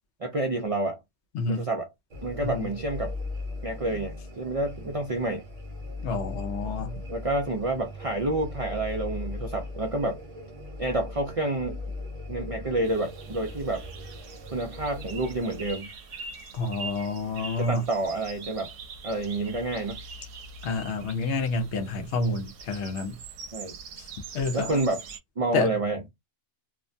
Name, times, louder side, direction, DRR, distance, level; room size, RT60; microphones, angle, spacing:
voice 1, 0.2-1.0 1.5-1.9 2.2-3.1 3.6-5.4 7.1-10.2 10.8-11.8 12.3-13.9 14.5-15.9 17.6-18.7 19.0-20.0 23.5-23.8 24.5-25.0 25.4-26.1, right 2 dB, 50° right, 0.4 m, -29 dB
voice 2, 1.3-1.7 2.4-2.7 6.0-7.0 16.5-17.8 20.6-23.2 24.0-24.1 24.3-24.8 25.5-25.7, left 3 dB, 70° left, 0.8 m, -29 dB
sound 1, 2.1-15.7, left 2 dB, 35° right, 0.8 m, -39 dB
sound 2, 12.8-25.2, right 4 dB, 75° right, 0.9 m, -43 dB
2.5 x 2.2 x 2.5 m
omnidirectional pair, 1.3 m